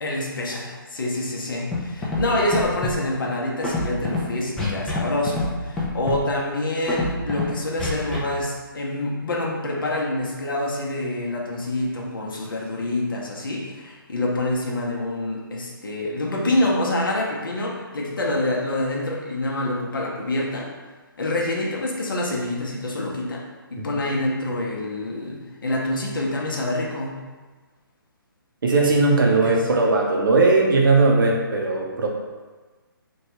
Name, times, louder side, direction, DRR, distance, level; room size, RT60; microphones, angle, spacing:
voice 1, 0.0-20.7 21.2-23.4 23.7-27.2 29.4-29.6, left 1 dB, 65° left, -2 dB, 0.7 m, -26 dB
Scratching (performance technique), 1.7-2.2 2.5-2.9 3.6-4.2 4.6-5.0 5.3-5.5 5.8-6.2 6.9-7.4 7.8-8.2, left 2 dB, 5° left, 0.3 m, -25 dB
voice 2, 28.6-32.1, right 3 dB, 65° right, 0 dB, 0.6 m, -18 dB
3.0 x 2.3 x 2.9 m, 1.3 s
figure-of-eight pair, 140°, 12 cm